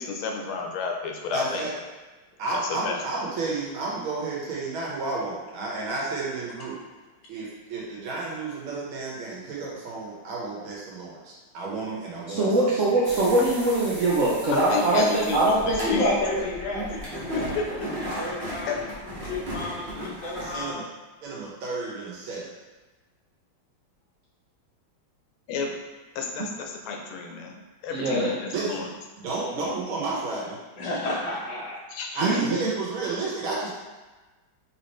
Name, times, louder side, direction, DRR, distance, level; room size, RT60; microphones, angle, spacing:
voice 1, 0.0-1.7 2.5-2.9 14.5-16.0 16.3-16.5 17.3-17.9 18.7-18.8 25.5-25.7 26.1-28.9 31.9-32.4, left 4 dB, 90° left, 2 dB, 1.5 m, -32 dB
voice 2, 1.3-1.7 2.4-6.8 7.3-12.5 20.4-20.8 21.2-22.5 28.5-28.9 29.2-30.6 32.1-33.7, right 3 dB, 85° right, -4 dB, 1.9 m, -31 dB
voice 3, 12.3-15.8 27.9-28.3 32.2-32.7, right 2 dB, 70° right, -7 dB, 0.7 m, -22 dB
sound 1, 13.0-20.7, right 1 dB, 35° right, 1.6 m, -36 dB
voice 4, 15.8-18.8 19.3-20.8 30.8-31.8, left 2 dB, 65° left, -3 dB, 1.4 m, -30 dB
4.3 x 3.9 x 3.1 m, 1.2 s
omnidirectional pair, 2.2 m